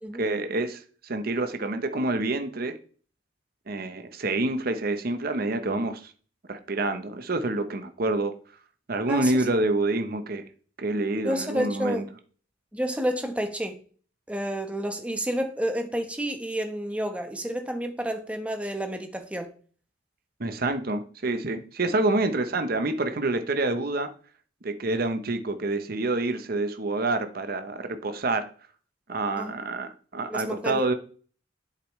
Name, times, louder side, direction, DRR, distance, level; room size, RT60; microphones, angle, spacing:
voice 1, 0.2-2.8 3.7-6.1 6.5-8.3 8.9-10.4 10.8-12.0 20.4-24.1 24.6-28.5 29.1-30.9, right 2 dB, 50° right, 8 dB, 0.8 m, -27 dB
voice 2, 9.1-9.4 11.2-12.1 12.7-13.8 14.3-19.5 29.4-29.5 30.3-30.8, equal, 5° right, 5 dB, 1.0 m, -30 dB
8.1 x 6.8 x 3.1 m, 0.42 s
head